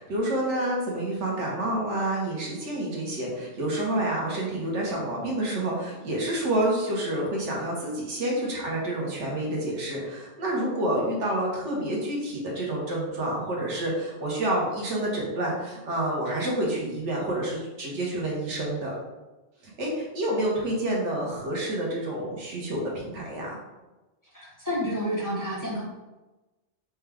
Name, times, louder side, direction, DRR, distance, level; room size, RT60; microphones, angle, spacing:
voice 1, 0.0-18.9 19.6-23.6, right 1 dB, 85° right, -3 dB, 1.4 m, -28 dB
voice 2, 24.3-25.8, equal, 20° left, -6 dB, 0.8 m, -29 dB
4.3 x 2.3 x 3.4 m, 1.1 s
omnidirectional pair, 1.2 m